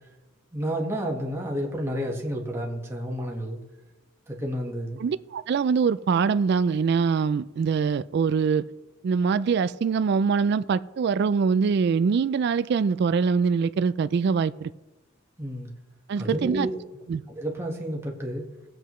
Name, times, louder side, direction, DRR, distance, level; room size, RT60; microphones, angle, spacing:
voice 1, 0.5-3.6 4.3-5.0 15.4-15.7 16.2-16.8 17.3-18.5, equal, 15° right, 1.5 m, -30 dB
voice 2, 5.0-8.6 9.0-14.7 16.1-16.7 17.1-17.2, right 5 dB, 55° right, 0.3 m, -23 dB
19.0 x 7.8 x 3.1 m
head